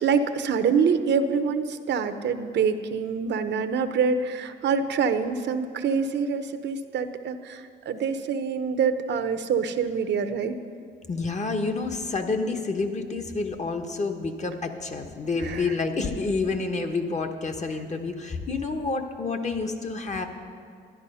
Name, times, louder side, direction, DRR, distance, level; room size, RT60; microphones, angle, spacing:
voice 1, 0.0-7.6 7.9-10.5 15.4-15.6, right 6 dB, 65° right, 9 dB, 0.8 m, -25 dB
voice 2, 11.1-20.3, left 3 dB, 35° left, 5 dB, 1.2 m, -29 dB
12.5 x 10.5 x 5.5 m, 2.3 s
cardioid pair, 90°, 20 cm